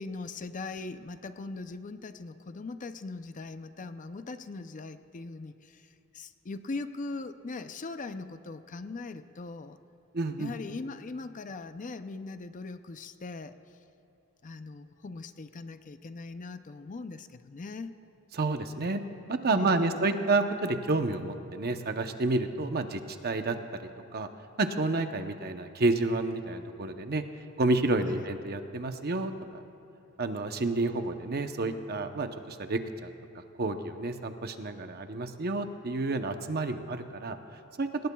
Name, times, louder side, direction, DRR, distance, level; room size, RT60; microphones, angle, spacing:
voice 1, 0.0-9.8 10.4-13.8 14.4-17.9 19.5-20.1 28.1-28.3, left 3 dB, 35° left, 10 dB, 0.5 m, -40 dB
voice 2, 10.1-10.5 18.3-19.0 19.3-24.3 24.6-27.2 27.6-29.6 30.2-33.1 33.6-37.4 37.8-37.9, right 2 dB, 45° right, 7 dB, 0.8 m, -30 dB
26.0 x 19.0 x 2.3 m, 2.7 s
head